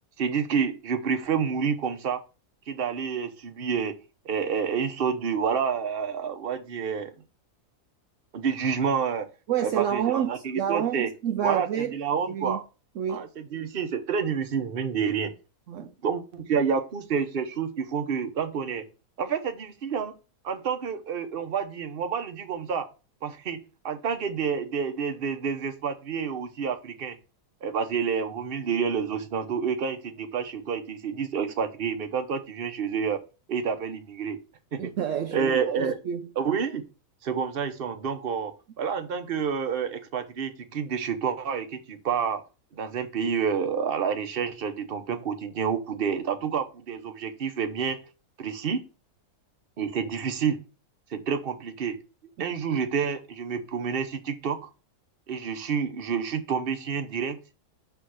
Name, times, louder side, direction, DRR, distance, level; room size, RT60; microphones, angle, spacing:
voice 1, 0.2-2.2 2.7-3.9 4.2-7.1 8.3-9.3 9.6-11.1 11.4-12.6 13.1-15.3 15.8-18.9 19.2-20.1 20.4-22.9 23.2-27.2 27.6-33.2 33.5-34.4 34.7-34.9 35.3-36.0 36.4-36.8 37.2-42.4 42.7-48.0 48.4-48.8 49.8-50.6 51.1-52.0 52.4-54.7 55.3-57.4, right 6 dB, 45° right, 0.9 m, -29 dB
voice 2, 9.5-11.9 12.3-12.6 13.0-13.3 15.7-15.9 34.8-35.5 35.8-36.3 52.4-52.6, right 9 dB, 70° right, 0.8 m, -28 dB
6.8 x 3.6 x 6.2 m
omnidirectional pair, 1.6 m